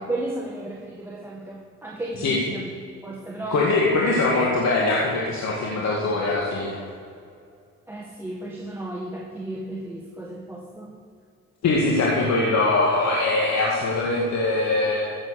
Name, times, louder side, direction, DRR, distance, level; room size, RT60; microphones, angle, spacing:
voice 1, 0.0-2.8 3.0-3.9 7.9-10.9, right 2 dB, 5° right, -2 dB, 1.6 m, -34 dB
voice 2, 3.5-6.7 11.6-15.2, left 2 dB, 65° left, -3 dB, 2.2 m, -22 dB
15.0 x 7.6 x 6.5 m, 2.3 s
cardioid pair, 90°, 30 cm